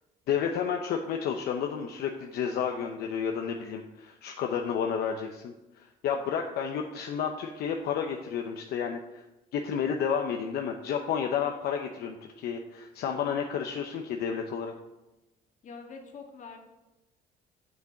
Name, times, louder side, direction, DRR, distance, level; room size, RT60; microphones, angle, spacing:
voice 1, 0.3-9.3 9.5-14.7, left 7 dB, 70° left, 3 dB, 0.8 m, -31 dB
voice 2, 15.6-16.6, left 5 dB, 50° left, 3 dB, 1.8 m, -44 dB
7.3 x 6.8 x 5.8 m, 0.98 s
cardioid pair, 110°, 17 cm